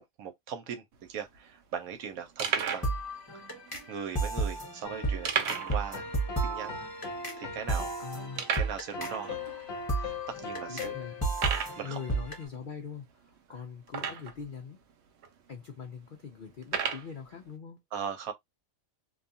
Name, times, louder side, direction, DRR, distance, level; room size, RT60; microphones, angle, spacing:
voice 1, 0.2-0.8 1.1-3.0 3.9-6.0 6.4-6.8 7.4-7.9 8.6-9.4 9.9-10.9 11.8-12.0 17.9-18.3, right 7 dB, 80° right, 1.1 m, -39 dB
sound 1, 0.9-1.0 1.2-1.4 1.9-2.0 2.4-2.9 3.7-3.8 5.2-5.8 6.1-6.2 6.7-6.8 7.3-7.4 8.4-8.8 9.6-9.7 10.3-10.4 11.3-11.8 13.9-14.4 15.2-15.3 16.6-17.1, right 7 dB, 60° right, 0.8 m, -31 dB
sound 2, 2.5-12.4, right 2 dB, 15° left, 1.0 m, -34 dB
sound 3, 4.8-12.2, left 3 dB, 50° left, 0.9 m, -41 dB
voice 2, 8.0-8.5 10.7-11.2 11.8-14.8 15.5-17.8, left 6 dB, 70° left, 0.4 m, -42 dB
2.6 x 2.3 x 2.6 m
omnidirectional pair, 1.5 m